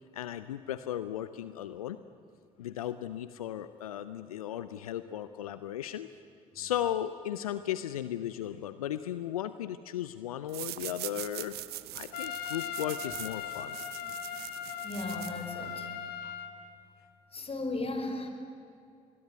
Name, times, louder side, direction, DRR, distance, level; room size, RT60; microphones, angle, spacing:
voice 1, 0.1-2.0 2.6-6.1 6.5-11.6 11.9-13.8, left 11 dB, 85° left, 13 dB, 0.6 m, -36 dB
sound 1, 10.5-15.8, right 16 dB, 65° right, 1.0 m, -43 dB
Trumpet, 12.1-16.6, left 9 dB, 60° left, 2.2 m, -39 dB
voice 2, 14.8-15.9 16.2-16.3 17.3-18.3, left 2 dB, 35° left, 6 dB, 4.7 m, -36 dB
26.0 x 21.0 x 9.4 m, 2.5 s
hypercardioid pair, 50°, 18 cm